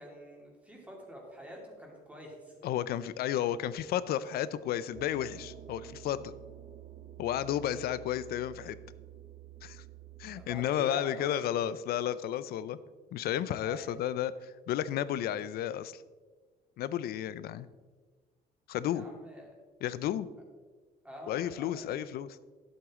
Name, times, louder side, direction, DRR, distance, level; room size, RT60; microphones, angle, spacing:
voice 1, 0.0-2.6 10.3-11.5 13.6-14.0 18.9-19.6 21.0-21.9, equal, 10° right, -1 dB, 2.7 m, -46 dB
voice 2, 2.6-6.4 7.2-8.8 9.6-9.8 10.2-12.8 13.1-16.0 16.8-17.7 18.7-19.0 19.8-20.3 21.3-22.4, left 11 dB, 65° left, 16 dB, 0.5 m, -32 dB
sound 1, 4.9-10.5, right 12 dB, 50° right, 0.7 m, -50 dB
11.0 x 8.0 x 3.7 m, 1.4 s
cardioid pair, 110°, 17 cm